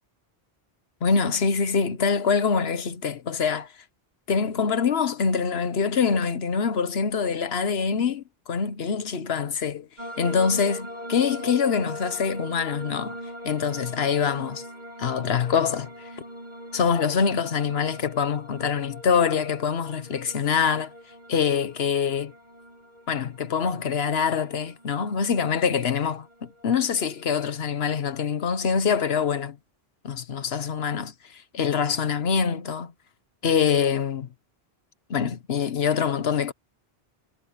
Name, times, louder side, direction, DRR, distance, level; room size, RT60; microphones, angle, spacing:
voice 1, 1.0-3.7 4.3-9.9 10.2-13.2 13.4-14.6 15.0-16.1 16.7-20.9 21.3-22.3 23.1-29.6 30.0-32.9 33.4-34.3 35.1-36.5, left 6 dB, 85° left, 1.3 m, -25 dB
sound 1, 10.0-27.7, equal, 45° right, 2.9 m, -41 dB
omnidirectional pair, 1.0 m